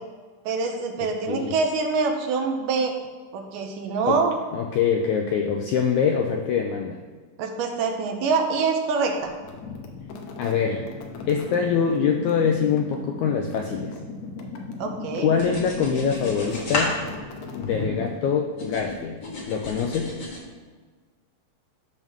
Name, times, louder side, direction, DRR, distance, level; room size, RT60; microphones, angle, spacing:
voice 1, 0.5-2.9 3.3-4.4 7.4-9.3 14.8-15.3, right 4 dB, 75° right, 3 dB, 2.2 m, -25 dB
voice 2, 4.5-7.0 10.4-10.8 11.3-13.9 15.2-17.0 17.5-19.2 19.5-20.1, left 7 dB, 90° left, 2 dB, 1.7 m, -24 dB
sound 1, 9.3-18.3, left 3 dB, 75° left, 2.0 m, -37 dB
sound 2, 15.3-18.2 18.6-20.4, left 2 dB, 55° left, 1.2 m, -32 dB
11.0 x 3.6 x 6.1 m, 1.5 s
omnidirectional pair, 4.0 m